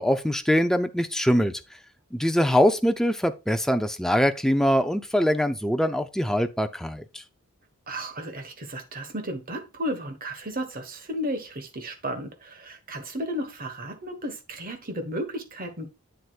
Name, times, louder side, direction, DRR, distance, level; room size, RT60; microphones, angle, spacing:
voice 1, 0.0-1.5 2.1-7.2, equal, ahead, 0.5 m, -23 dB
voice 2, 7.9-15.9, equal, 40° right, 1.3 m, -33 dB
8.4 x 7.8 x 2.4 m
head